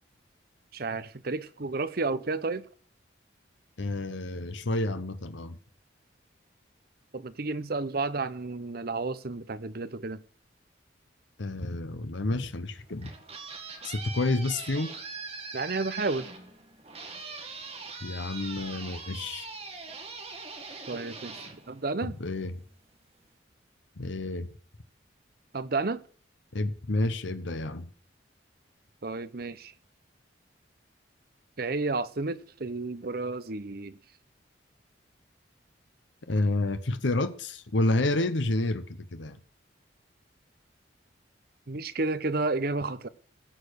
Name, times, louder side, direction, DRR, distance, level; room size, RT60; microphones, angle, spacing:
voice 1, 0.7-2.6 7.1-10.2 15.5-16.3 20.9-22.1 25.5-26.0 29.0-29.7 31.6-34.0 41.7-43.1, right 3 dB, 55° right, 0.8 m, -31 dB
voice 2, 3.8-5.6 11.4-13.1 13.8-14.9 18.0-19.5 22.0-22.6 24.0-24.5 26.5-27.9 36.3-39.4, left 2 dB, 75° left, 0.9 m, -29 dB
sound 1, 12.8-22.4, right 4 dB, 35° right, 2.1 m, -42 dB
16.5 x 6.8 x 6.5 m
head